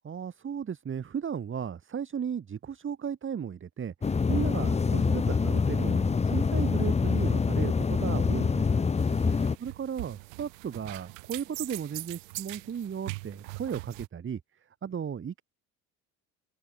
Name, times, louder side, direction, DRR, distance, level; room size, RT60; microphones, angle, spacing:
voice 1, 0.0-8.8 9.2-14.4 14.8-15.4, right 7 dB, 30° right, 1.6 m, -35 dB
sound 1, 4.0-9.6, left 5 dB, 15° left, 0.8 m, -25 dB
sound 2, 9.0-14.1, right 27 dB, 80° right, 2.5 m, -42 dB
open air
hypercardioid pair, 75°, 39 cm